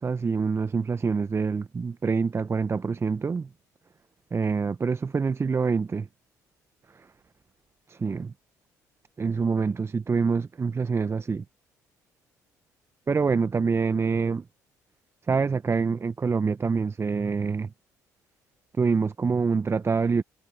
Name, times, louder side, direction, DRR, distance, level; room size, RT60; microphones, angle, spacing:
voice 1, 0.0-3.5 4.3-6.1 6.9-7.1 7.9-8.3 9.2-11.4 13.1-14.4 15.3-17.7 18.8-20.2, right 5 dB, 30° right, 0.9 m, -26 dB
hypercardioid pair, 50°, 9 cm